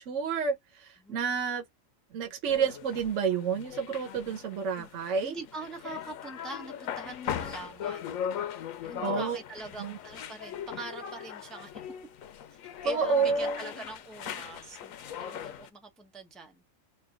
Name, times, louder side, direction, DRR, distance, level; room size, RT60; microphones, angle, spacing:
voice 1, 0.1-1.6 2.1-5.4 9.0-9.4 9.8-10.0 12.8-13.6, right 5 dB, 70° right, 1.1 m, -29 dB
voice 2, 1.0-1.3 4.7-4.9 5.2-8.2 8.8-11.8 12.5-14.9 15.2-16.6, right 3 dB, ahead, 0.6 m, -43 dB
sound 1, 2.4-15.7, left 9 dB, 90° left, 1.0 m, -39 dB
3.2 x 2.5 x 3.3 m
omnidirectional pair, 1.4 m